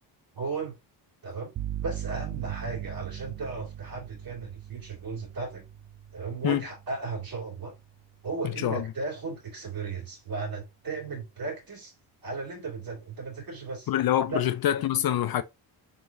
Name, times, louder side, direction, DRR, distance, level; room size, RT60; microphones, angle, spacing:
voice 1, 0.3-0.8 1.2-1.5 1.8-5.6 6.1-7.7 8.2-11.9 12.2-13.9 14.3-14.4, right 4 dB, 50° right, 2.4 m, -35 dB
sound 1, 1.6-9.3, right 10 dB, 35° right, 0.4 m, -40 dB
voice 2, 13.9-15.4, left 11 dB, 55° left, 0.5 m, -25 dB
3.8 x 3.7 x 2.7 m
cardioid pair, 85°, 45 cm